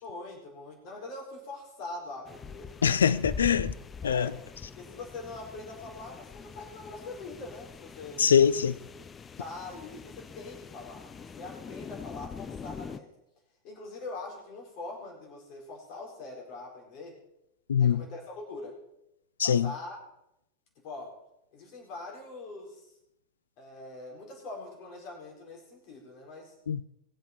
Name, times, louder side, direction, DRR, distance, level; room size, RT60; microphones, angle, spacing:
voice 1, 0.0-2.7 4.0-8.3 9.4-13.1 13.6-17.2 17.8-18.8 19.4-20.0 20.8-21.2 21.5-22.9 23.6-26.5, left 2 dB, 40° left, 4.7 m, -43 dB
sound 1, 2.2-13.0, left 5 dB, 20° left, 0.7 m, -43 dB
voice 2, 2.8-3.7 4.0-4.3 8.2-8.7 17.7-18.0 19.4-19.7 26.7-26.8, left 7 dB, 70° left, 0.5 m, -23 dB
21.5 x 8.1 x 4.4 m
figure-of-eight pair, 90°, 0 cm